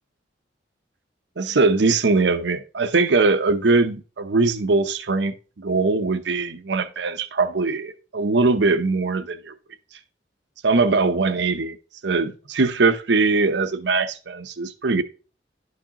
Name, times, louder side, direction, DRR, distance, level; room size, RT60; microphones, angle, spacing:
voice 1, 1.4-9.5 10.6-11.8 12.0-15.0, right 3 dB, 70° right, 0.7 m, -21 dB
11.0 x 4.8 x 2.9 m
head